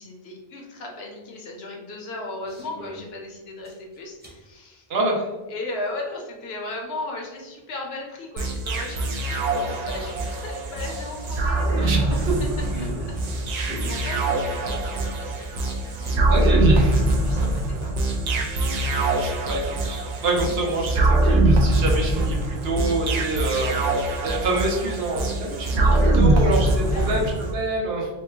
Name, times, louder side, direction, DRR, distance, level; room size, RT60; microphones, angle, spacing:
voice 1, 0.0-4.9 5.5-13.2 13.5-15.5 15.8-16.3 17.2-18.3 20.4-20.6 25.7-27.2, left 2 dB, 75° left, 1 dB, 0.9 m, -37 dB
sound 1, 2.4-3.1 3.6-4.4 5.9-6.0 8.7-8.8 9.0-9.1 9.6-9.7 11.3-13.2 13.6-15.1, equal, 10° right, 0.5 m, -41 dB
voice 2, 4.9-5.3 11.7-12.0 16.3-17.0 19.2-23.8 24.2-28.1, right 2 dB, 75° right, -1 dB, 0.9 m, -26 dB
sound 2, 8.4-27.5, right 2 dB, 55° right, 0.5 m, -23 dB
2.9 x 2.2 x 3.3 m, 1.1 s
omnidirectional pair, 1.1 m